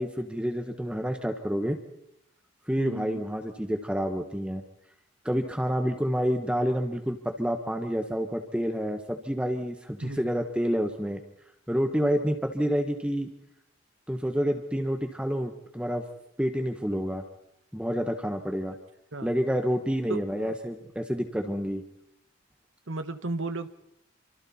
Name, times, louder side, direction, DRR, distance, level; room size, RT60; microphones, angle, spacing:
voice 1, 0.0-1.8 2.7-4.6 5.2-11.2 11.7-13.3 14.1-16.0 16.4-17.2 17.7-18.7 19.2-21.8, equal, 5° right, 6 dB, 1.2 m, -28 dB
voice 2, 2.8-3.2 10.0-10.3 19.1-19.3 20.1-20.5 22.9-23.7, right 2 dB, 80° right, 10 dB, 1.4 m, -34 dB
28.0 x 25.5 x 4.3 m, 0.80 s
head